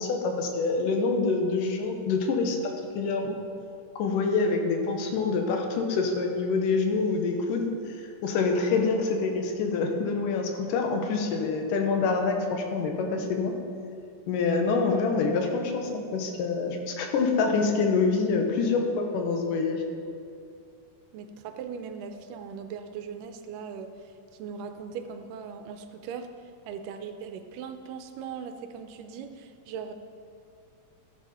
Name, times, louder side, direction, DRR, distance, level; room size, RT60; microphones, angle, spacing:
voice 1, 0.0-2.6 3.0-3.4 4.0-7.7 8.0-13.6 14.3-19.8, left 4 dB, 75° left, 3 dB, 2.6 m, -26 dB
voice 2, 21.1-24.0 24.3-26.3 26.7-29.9, right 6 dB, 80° right, 7 dB, 2.2 m, -39 dB
14.0 x 7.6 x 4.2 m, 2.4 s
omnidirectional pair, 4.0 m